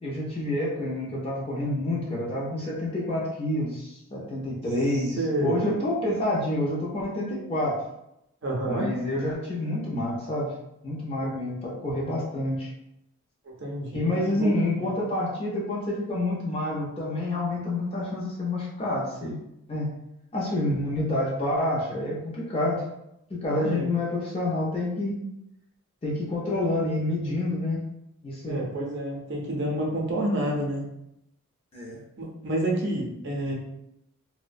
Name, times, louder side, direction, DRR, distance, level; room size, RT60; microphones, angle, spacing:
voice 1, 0.0-7.8 8.6-10.5 10.8-12.7 13.9-19.4 19.7-19.9 20.3-22.8 23.3-25.2 26.0-27.8 28.2-28.7 31.7-32.0, left 1 dB, 25° left, -5 dB, 0.5 m, -28 dB
voice 2, 5.2-5.5 8.4-8.8 11.2-11.3 13.6-14.5 23.5-23.9 28.5-30.8 32.2-33.5, right 1 dB, 50° right, -2 dB, 0.5 m, -29 dB
2.3 x 2.1 x 2.5 m, 0.83 s
head